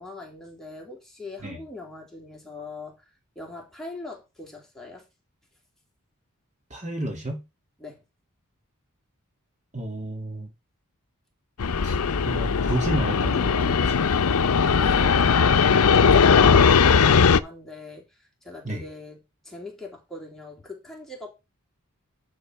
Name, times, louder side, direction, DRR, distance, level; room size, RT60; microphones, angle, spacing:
voice 1, 0.0-3.0 3.3-5.1 7.8-8.0 14.6-21.3, left 2 dB, ahead, 2.9 m, -41 dB
voice 2, 6.7-7.4 9.7-10.5 11.8-12.0 12.2-14.1 18.6-18.8, right 1 dB, 35° right, 2.4 m, -31 dB
Fixed-wing aircraft airplane, 11.6-17.4, left 6 dB, 90° left, 0.6 m, -19 dB
11.0 x 3.9 x 6.2 m
head